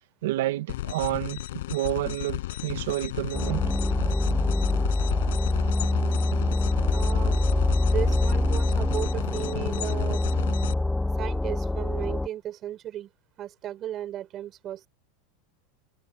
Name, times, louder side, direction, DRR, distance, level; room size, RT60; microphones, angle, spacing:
voice 1, 0.2-1.4 1.7-3.6, right 15 dB, 75° right, 2.0 m, -29 dB
sound 1, 0.7-10.7, left 16 dB, 75° left, 6.0 m, -34 dB
sound 2, 3.3-12.3, left 2 dB, 5° left, 0.8 m, -25 dB
voice 2, 6.9-7.5 7.8-10.2 11.2-13.1 13.4-14.9, right 12 dB, 30° right, 4.7 m, -35 dB
supercardioid pair, 160°, 0 cm